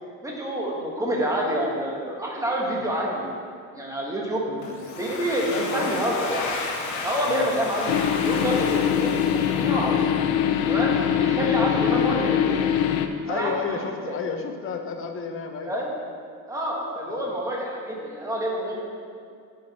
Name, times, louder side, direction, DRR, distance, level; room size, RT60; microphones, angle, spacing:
voice 1, 0.2-3.3 3.7-4.4 5.0-6.5 7.0-8.0 8.2-9.1 9.4-10.1 10.7-12.6 13.3-13.8 15.6-15.9 16.5-18.8, equal, 10° right, -3 dB, 1.3 m, -27 dB
Domestic sounds home sounds, 4.6-10.2, left 3 dB, 55° left, 1.1 m, -33 dB
voice 2, 5.5-5.9 7.3-7.5 11.1-11.3 13.2-15.8 17.1-17.3, left 5 dB, 35° left, 5 dB, 0.8 m, -32 dB
sound 1, 7.9-13.1, left 9 dB, 85° left, 0.6 m, -22 dB
10.5 x 5.1 x 4.1 m, 2.3 s
cardioid pair, 145°, 36 cm